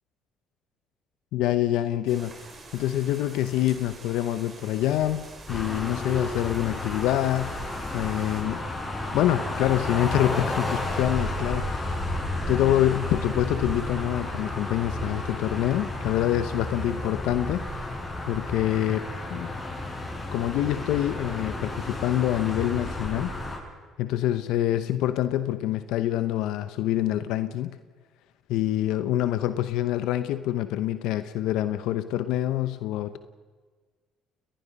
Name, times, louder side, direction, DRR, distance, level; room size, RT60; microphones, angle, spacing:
voice 1, 1.3-2.3 2.7-7.6 7.9-8.6 9.1-12.0 12.5-17.6 18.3-19.5 20.3-23.3 24.0-27.8 28.5-33.2, left 13 dB, 80° left, 12 dB, 0.8 m, -26 dB
sound 1, 2.1-8.4, right 3 dB, 40° right, 5.9 m, -46 dB
sound 2, 5.5-23.6, left 1 dB, 25° left, 7.9 m, -32 dB
30.0 x 19.5 x 5.4 m, 1.5 s
supercardioid pair, 75°, 0 cm